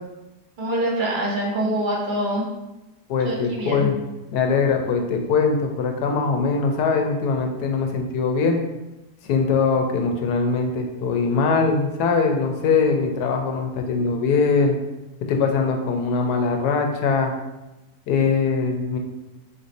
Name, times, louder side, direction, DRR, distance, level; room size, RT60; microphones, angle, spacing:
voice 1, 0.6-2.4 3.2-3.9, right 1 dB, 40° right, -3 dB, 0.8 m, -25 dB
voice 2, 3.1-4.0 4.3-8.6 9.3-14.8 15.3-17.3 18.1-19.0, left 4 dB, 80° left, 3 dB, 1.2 m, -21 dB
3.9 x 2.6 x 4.0 m, 1.0 s
omnidirectional pair, 1.8 m